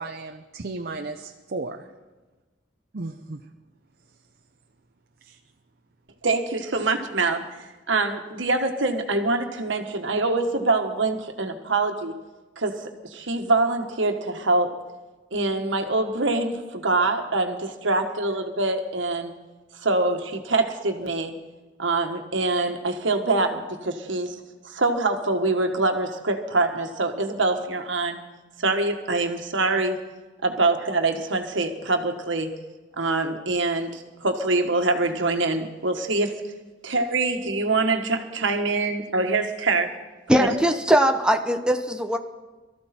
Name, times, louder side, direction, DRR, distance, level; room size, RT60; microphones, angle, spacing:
voice 1, 0.0-1.8 2.9-3.4 5.2-5.4, right 3 dB, 55° right, 5 dB, 0.7 m, -34 dB
voice 2, 6.2-12.1 12.6-14.7 15.3-19.3 19.8-21.3 21.8-24.4 24.6-28.2 28.6-30.0 30.4-32.5 33.0-36.4 36.8-40.0 40.3-40.5, right 3 dB, 80° right, 5 dB, 1.6 m, -24 dB
voice 3, 40.3-42.2, right 1 dB, 5° right, 5 dB, 0.8 m, -20 dB
23.0 x 14.0 x 4.4 m, 1.2 s
head